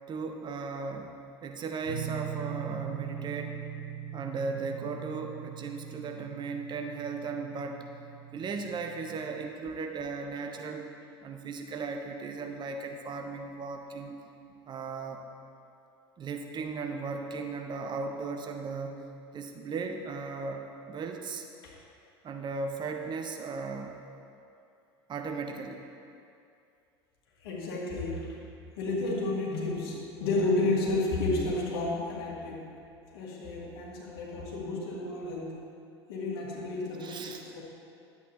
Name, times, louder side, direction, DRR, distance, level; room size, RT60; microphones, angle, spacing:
voice 1, 0.1-3.6 4.1-7.9 8.3-10.8 11.2-14.2 14.7-15.2 16.2-21.5 22.2-24.0 25.1-25.8 37.0-37.4, right 4 dB, 35° right, 4 dB, 0.8 m, -36 dB
sound 1, 1.9-9.4, right 9 dB, 65° right, 1.3 m, -41 dB
voice 2, 27.4-28.3 28.8-32.6 33.1-35.5 36.1-37.6, left 2 dB, 65° left, -4 dB, 2.0 m, -31 dB
11.0 x 8.3 x 3.0 m, 2.5 s
figure-of-eight pair, 75°, 14 cm